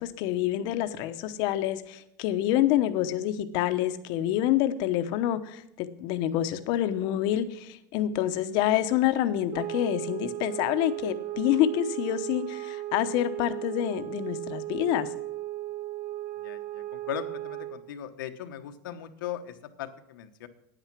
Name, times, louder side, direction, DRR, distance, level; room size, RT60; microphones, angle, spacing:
voice 1, 0.0-15.1, left 12 dB, 45° left, 10 dB, 0.9 m, -27 dB
sound 1, 9.5-17.9, right 15 dB, 40° right, 0.9 m, -36 dB
voice 2, 16.4-20.5, left 11 dB, 90° left, 6 dB, 1.2 m, -39 dB
9.8 x 9.0 x 6.0 m, 0.79 s
supercardioid pair, 165°, 11 cm